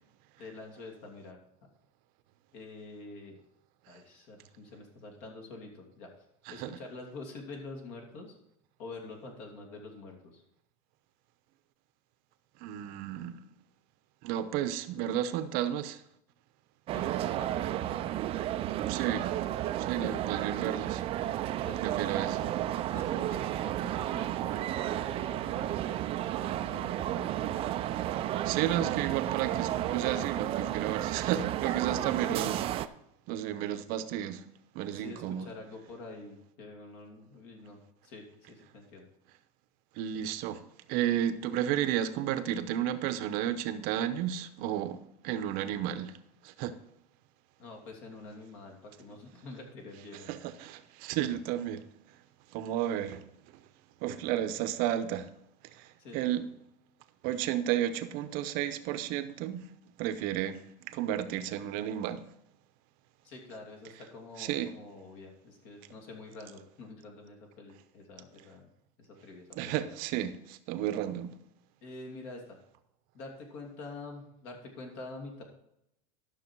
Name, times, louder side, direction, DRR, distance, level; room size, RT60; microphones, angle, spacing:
voice 1, 0.4-1.4 2.5-3.4 3.9-6.1 6.5-8.3 8.8-10.4 16.9-18.1 21.5-22.6 22.9-27.8 31.9-32.1 34.9-37.8 38.0-39.1 47.6-50.3 56.0-56.4 63.2-68.7 69.0-69.9 71.8-72.6 73.1-75.4, left 3 dB, 55° left, 2.8 m, -47 dB
voice 2, 12.6-13.4 14.2-16.0 18.9-19.3 19.8-21.0 21.8-22.4 28.4-32.7 33.3-34.4 34.7-35.5 40.0-40.6 40.9-46.2 46.4-46.8 50.3-51.8 52.5-53.3 54.0-55.3 55.7-55.9 56.1-56.4 57.2-59.7 60.0-60.6 60.9-62.2 64.4-64.7 69.6-71.4, right 11 dB, 45° right, 0.8 m, -32 dB
sound 1, 16.9-32.9, right 12 dB, 30° right, 0.4 m, -32 dB
12.5 x 6.4 x 4.6 m
supercardioid pair, 145°, 20 cm